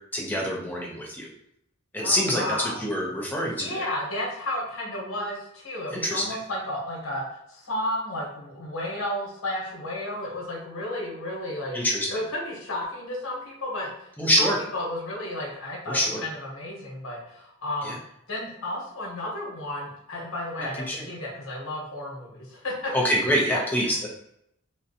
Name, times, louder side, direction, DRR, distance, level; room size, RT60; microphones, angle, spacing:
voice 1, 0.1-1.3 1.9-3.9 5.9-6.2 11.7-12.1 14.2-14.6 15.9-16.2 17.8-18.0 20.9-21.1 22.9-24.1, equal, 10° left, -2 dB, 0.6 m, -25 dB
voice 2, 2.0-2.8 3.4-11.8 12.1-14.1 14.4-14.5 14.7-18.0 18.3-22.9 23.5-24.1, left 1 dB, 75° left, -3 dB, 1.1 m, -33 dB
3.9 x 2.2 x 2.7 m, 0.76 s
head